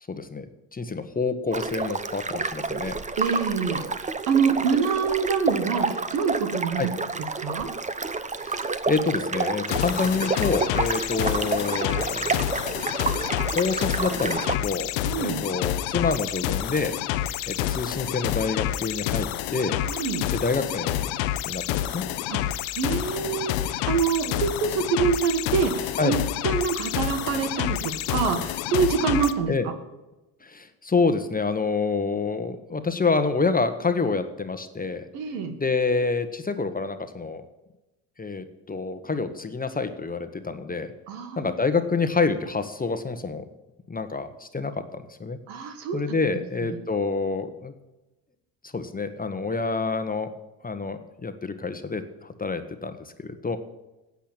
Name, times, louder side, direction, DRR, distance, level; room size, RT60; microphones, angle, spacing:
voice 1, 0.1-0.4 0.7-3.0 6.8-6.9 8.4-12.5 13.5-14.9 15.2-16.9 17.5-19.8 20.3-21.1 21.4-22.0 26.0-26.1 29.5-29.7 30.4-35.0 35.6-37.4 38.2-40.9 41.4-43.4 43.9-45.4 45.9-47.7 48.6-50.3 50.6-53.6, left 4 dB, 15° left, 9 dB, 1.3 m, -27 dB
sound 1, 1.5-14.6, right 4 dB, 15° right, 0.8 m, -29 dB
voice 2, 3.2-6.9 7.4-7.7 15.1-15.4 19.8-20.3 22.3-22.4 22.8-26.2 26.4-29.5 35.1-35.5 41.1-41.5 45.5-46.0 46.6-46.7, right 6 dB, 75° right, 8 dB, 1.9 m, -26 dB
sound 2, 9.7-29.3, left 13 dB, 70° left, 0.9 m, -28 dB
10.0 x 8.6 x 8.9 m, 1.0 s
hypercardioid pair, 70°, 49 cm